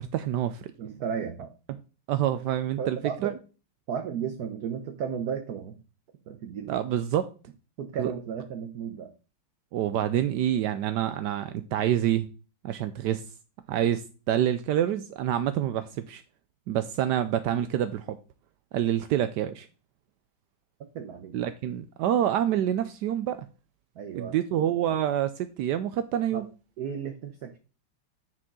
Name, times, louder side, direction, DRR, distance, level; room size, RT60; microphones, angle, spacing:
voice 1, 0.0-0.7 2.1-3.3 6.7-7.3 8.0-8.1 9.7-12.3 12.6-13.2 13.7-16.2 16.7-18.2 18.7-19.7 21.3-23.4 24.1-26.5, right 11 dB, 80° right, 0.9 m, -27 dB
voice 2, 0.8-1.5 2.8-3.4 3.9-5.8 6.3-6.7 7.8-9.1 20.9-21.3 24.0-24.4 26.3-26.5 26.8-27.6, right 7 dB, 60° right, 1.1 m, -34 dB
9.6 x 5.0 x 3.7 m
omnidirectional pair, 2.3 m